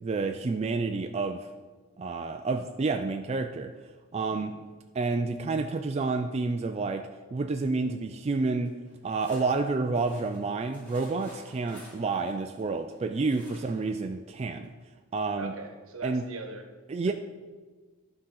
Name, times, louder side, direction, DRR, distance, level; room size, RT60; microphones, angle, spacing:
voice 1, 0.0-1.5 2.0-3.7 4.1-4.5 4.9-8.8 9.0-14.7 15.1-15.5 16.0-16.2 16.9-17.1, right 3 dB, 30° right, 0.3 m, -29 dB
sound 1, 8.7-13.0 13.3-13.9 14.3-14.4 14.6-14.7, equal, 5° left, 2.0 m, -52 dB
voice 2, 15.4-16.6 17.1-17.2, right 3 dB, 75° right, 1.1 m, -41 dB
11.5 x 3.9 x 5.6 m
head